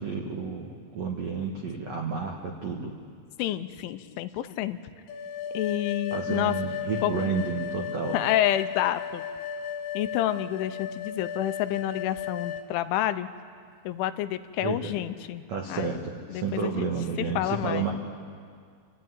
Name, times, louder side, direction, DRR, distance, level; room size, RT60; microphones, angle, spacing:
voice 1, 0.0-2.9 6.1-8.2 14.6-14.9 15.5-17.9, right 5 dB, 75° right, 1 dB, 1.5 m, -31 dB
voice 2, 3.4-4.8 5.5-6.5 7.0-7.1 8.1-9.2 9.9-13.3 13.9-15.4 15.7-16.0 16.3-16.9 17.2-17.9, left 13 dB, 85° left, 11 dB, 3.2 m, -29 dB
sound 1, 5.1-12.7, left 7 dB, 70° left, 2.5 m, -35 dB
27.0 x 13.0 x 9.4 m, 2.1 s
omnidirectional pair, 5.4 m